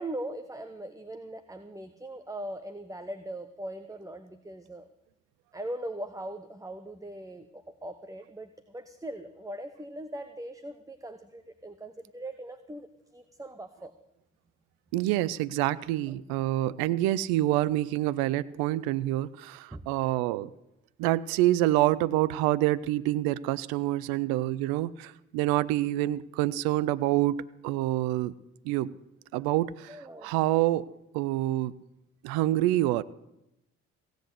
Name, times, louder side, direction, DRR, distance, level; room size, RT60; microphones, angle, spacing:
voice 1, 0.0-4.9 5.5-12.9 13.1-13.9 19.7-19.8 29.9-30.3, right 1 dB, 10° right, 10 dB, 1.0 m, -40 dB
voice 2, 14.9-20.5 21.0-28.3 28.6-28.9 29.3-30.9 31.1-31.7 32.2-33.0, right 15 dB, 75° right, 18 dB, 0.5 m, -27 dB
16.5 x 8.0 x 8.2 m, 0.87 s
hypercardioid pair, 45°, 37 cm